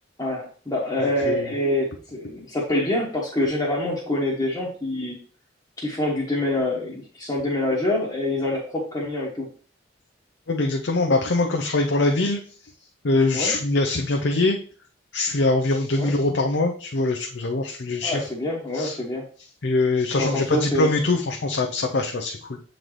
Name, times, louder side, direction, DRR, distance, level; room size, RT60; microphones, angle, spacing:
voice 1, 0.2-5.2 5.8-9.5 13.3-13.5 15.9-16.1 18.0-19.2 20.2-20.9, left 1 dB, 20° left, -7 dB, 1.3 m, -26 dB
voice 2, 10.5-12.4 13.0-14.6 15.1-18.2 18.7-19.0 19.6-22.6, left 2 dB, 65° left, 2 dB, 0.7 m, -23 dB
7.5 x 3.9 x 3.3 m, 0.41 s
head